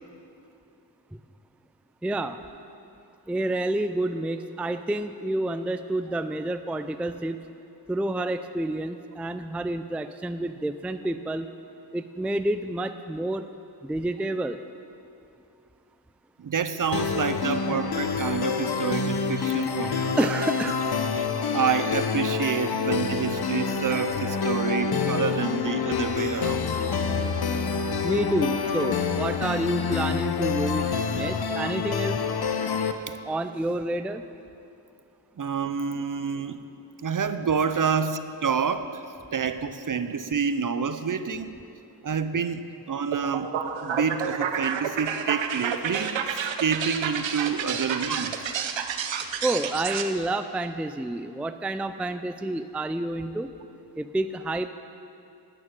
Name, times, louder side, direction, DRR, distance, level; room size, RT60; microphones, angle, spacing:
voice 1, 2.0-2.4 3.3-7.4 7.9-11.5 11.9-13.5 13.8-14.6 20.2-20.8 28.0-32.2 33.3-34.2 49.4-53.5 54.0-54.7, right 1 dB, 5° right, 10 dB, 0.4 m, -29 dB
voice 2, 16.4-20.2 21.1-21.3 21.5-26.7 33.1-33.2 35.4-36.6 37.0-39.0 39.3-41.5 42.0-43.5 43.8-48.3, right 6 dB, 45° right, 11 dB, 0.7 m, -28 dB
sound 1, 16.9-32.9, left 5 dB, 55° left, 0.9 m, -27 dB
sound 2, 43.1-50.1, right 7 dB, 90° right, 0.8 m, -30 dB
9.5 x 9.2 x 9.0 m, 2.6 s
cardioid pair, 60°, 44 cm